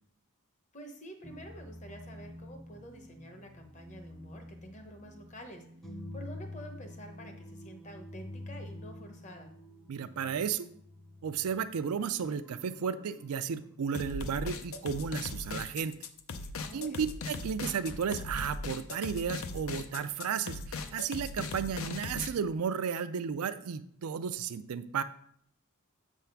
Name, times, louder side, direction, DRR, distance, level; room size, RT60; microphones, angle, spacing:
voice 1, 0.7-5.6 6.1-9.5 16.6-17.1, equal, 35° left, 5 dB, 1.0 m, -48 dB
sound 1, 1.2-13.8, left 1 dB, ahead, 0.6 m, -48 dB
voice 2, 9.9-10.7 11.2-15.9 16.7-25.0, right 7 dB, 80° right, 13 dB, 0.4 m, -33 dB
sound 2, 13.9-22.3, left 3 dB, 65° left, 0.6 m, -39 dB
7.8 x 3.6 x 5.7 m, 0.66 s
head